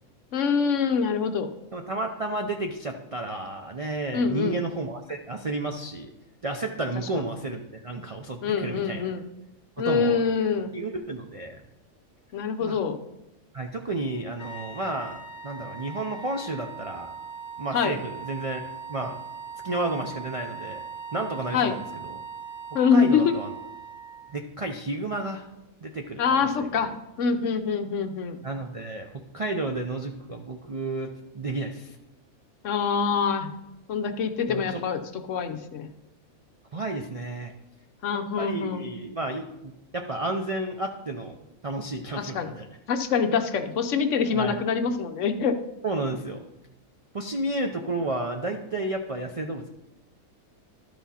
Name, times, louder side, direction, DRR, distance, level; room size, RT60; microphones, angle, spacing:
voice 1, 0.3-1.5 4.1-4.5 7.2-7.3 8.4-9.2 9.8-10.7 12.3-13.0 17.7-18.0 21.5-21.8 22.7-23.3 26.2-26.9 27.2-28.4 32.6-33.5 33.9-35.9 38.0-38.9 42.2-42.5 42.9-45.6, left 6 dB, 65° left, 8 dB, 1.0 m, -25 dB
voice 2, 1.7-6.1 6.4-9.0 9.8-10.2 10.7-11.6 12.6-12.8 13.5-17.1 17.6-18.6 18.9-19.2 19.6-20.8 21.1-22.2 22.9-23.5 24.3-25.5 25.8-26.9 28.4-32.0 34.5-34.8 36.7-37.5 38.4-41.4 41.6-42.7 44.3-44.6 45.8-46.5 47.1-49.7, right 2 dB, 50° right, 4 dB, 0.4 m, -32 dB
sound 1, 14.4-24.4, right 5 dB, 35° left, 1.7 m, -40 dB
12.0 x 6.0 x 4.2 m, 0.91 s
omnidirectional pair, 1.5 m